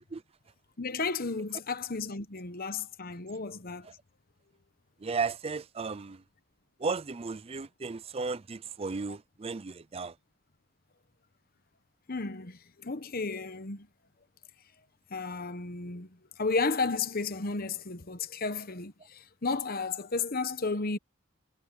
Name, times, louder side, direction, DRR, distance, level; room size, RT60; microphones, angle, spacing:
voice 1, 0.8-3.9 12.1-13.9 15.1-16.1 16.4-21.0, left 4 dB, 45° left, 1.1 m, -33 dB
voice 2, 5.0-6.2 6.8-10.2, right 4 dB, 30° right, 0.5 m, -34 dB
head